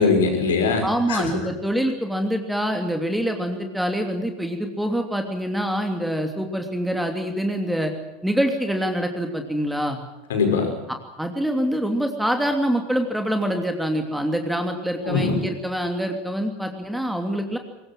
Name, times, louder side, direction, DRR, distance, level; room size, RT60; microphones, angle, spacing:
voice 1, 0.0-1.4 10.3-10.7 15.0-15.4, left 4 dB, 70° left, 5 dB, 5.7 m, -21 dB
voice 2, 0.8-7.9 8.2-10.0 11.2-17.6, equal, 5° right, 4 dB, 2.9 m, -25 dB
23.5 x 21.0 x 7.5 m, 0.97 s
figure-of-eight pair, 75°, 0 cm